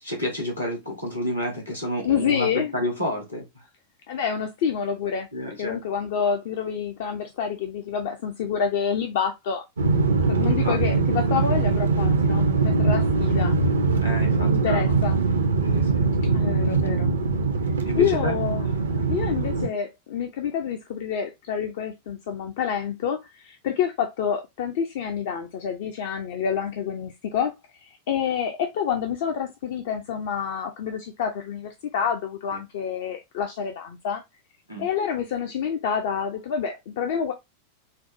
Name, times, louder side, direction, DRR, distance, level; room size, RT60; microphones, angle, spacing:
voice 1, 0.0-3.4 5.3-5.8 10.5-10.8 14.0-14.9 15.6-16.1 17.8-18.3 34.7-34.9, left 1 dB, 85° left, 1.4 m, -30 dB
voice 2, 2.0-2.7 4.1-5.3 5.6-9.6 10.2-13.5 14.5-15.2 16.3-17.1 17.9-18.7 19.1-27.6 27.8-34.2 34.8-37.3, left 7 dB, 55° left, 0.4 m, -28 dB
sound 1, 9.8-19.7, right 3 dB, 70° right, 0.5 m, -22 dB
4.2 x 2.0 x 2.6 m
figure-of-eight pair, 90°, 0 cm